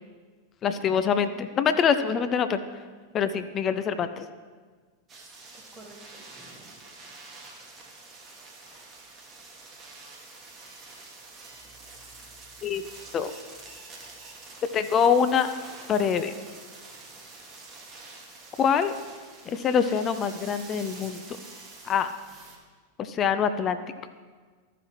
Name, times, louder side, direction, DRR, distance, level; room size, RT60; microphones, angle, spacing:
voice 1, 0.6-2.6 3.1-4.2 12.6-12.8 13.1-13.3 14.7-15.5 15.9-16.3 18.6-18.9 19.5-21.2 21.8-22.1 23.0-23.8, left 7 dB, 30° left, 10 dB, 0.4 m, -24 dB
sound 1, 5.1-22.6, right 3 dB, 20° right, 1.4 m, -47 dB
voice 2, 5.3-6.9 11.5-12.7, right 2 dB, 5° right, -2 dB, 1.6 m, -54 dB
13.5 x 5.9 x 3.1 m, 1.5 s
figure-of-eight pair, 90°, 0 cm